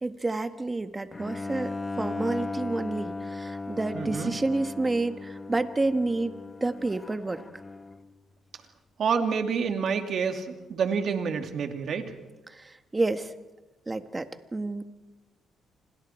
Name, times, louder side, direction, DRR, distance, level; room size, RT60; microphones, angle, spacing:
voice 1, 0.0-7.4 12.5-13.3 13.9-14.8, right 2 dB, 20° right, 9 dB, 1.5 m, -29 dB
Bowed string instrument, 1.1-8.1, left 3 dB, 25° left, 1.2 m, -37 dB
voice 2, 3.9-4.4 9.0-12.0, right 6 dB, 60° right, 5 dB, 2.5 m, -28 dB
29.0 x 26.0 x 4.5 m, 1.1 s
cardioid pair, 90°, 0 cm